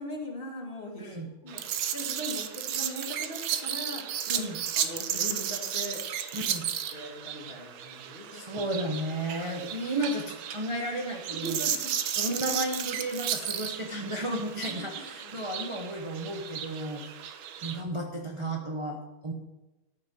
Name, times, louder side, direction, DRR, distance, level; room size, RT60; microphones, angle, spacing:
voice 1, 0.0-1.2 1.4-1.6 1.9-4.5 4.8-6.0 6.3-6.4 6.9-8.4 11.4-11.9 14.7-14.8 15.2-15.4 17.6-17.7, equal, 25° left, 0 dB, 2.0 m, -40 dB
voice 2, 1.0-1.5 4.3-4.6 6.3-6.7 8.3-11.6 12.2-17.0 17.6-19.3, right 1 dB, 25° right, 0 dB, 0.6 m, -33 dB
sound 1, 1.5-17.8, right 9 dB, 75° right, 1.5 m, -34 dB
13.5 x 6.0 x 6.3 m, 1.1 s
omnidirectional pair, 2.3 m